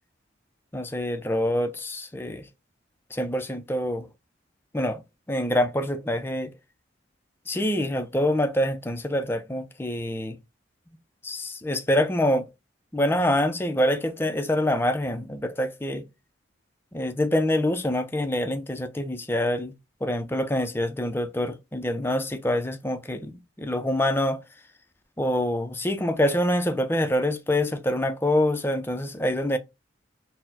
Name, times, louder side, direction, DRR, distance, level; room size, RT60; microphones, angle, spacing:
voice 1, 0.7-2.5 3.1-4.1 4.7-5.0 5.3-6.5 7.5-10.4 11.2-12.5 12.9-16.0 16.9-19.7 20.0-24.4 25.2-29.6, left 1 dB, 10° left, 0.4 m, -25 dB
4.2 x 2.0 x 4.1 m
head